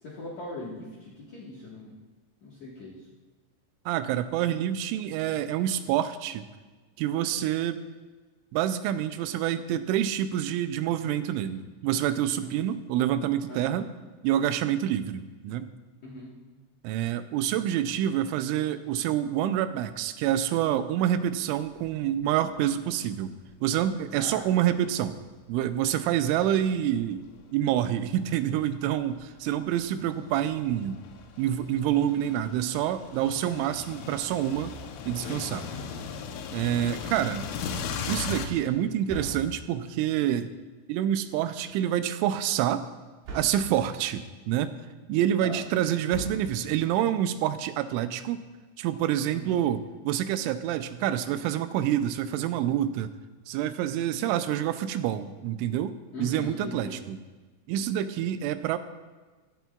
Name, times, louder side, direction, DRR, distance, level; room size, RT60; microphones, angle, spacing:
voice 1, 0.0-2.0 2.4-3.1 12.4-12.5 13.5-13.8 16.0-16.4 24.1-24.4 35.7-36.0 36.8-37.1 45.4-45.6 49.3-49.6 56.1-57.0, left 2 dB, 60° left, -6 dB, 2.0 m, -41 dB
voice 2, 3.9-6.5 7.0-7.8 8.5-13.9 14.2-15.7 16.8-25.2 25.5-27.2 27.5-31.0 31.4-34.7 35.1-35.7 36.5-37.5 38.1-40.5 40.9-42.9 43.3-44.7 45.1-48.4 48.8-53.1 53.5-57.2 57.7-58.8, right 11 dB, 85° right, 11 dB, 3.0 m, -27 dB
sound 1, 21.7-21.9 22.4-22.5 23.5-25.1 25.8-38.5, left 6 dB, 80° left, 3.2 m, -39 dB
sound 2, 35.9-36.5 39.1-40.0 43.2-43.9 46.1-46.9, right 2 dB, 60° right, 4.0 m, -41 dB
15.0 x 13.0 x 2.4 m, 1.3 s
omnidirectional pair, 5.5 m